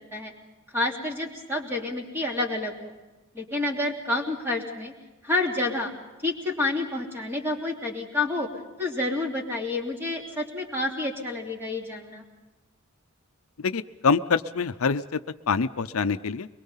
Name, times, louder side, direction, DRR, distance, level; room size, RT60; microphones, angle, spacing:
voice 1, 0.7-2.9 3.3-4.9 5.2-5.9 6.2-8.5 8.8-12.2, left 2 dB, 10° right, 0 dB, 3.0 m, -29 dB
voice 2, 13.6-15.0 15.5-16.5, left 5 dB, 80° left, 12 dB, 0.6 m, -25 dB
23.0 x 22.5 x 5.7 m, 1.1 s
head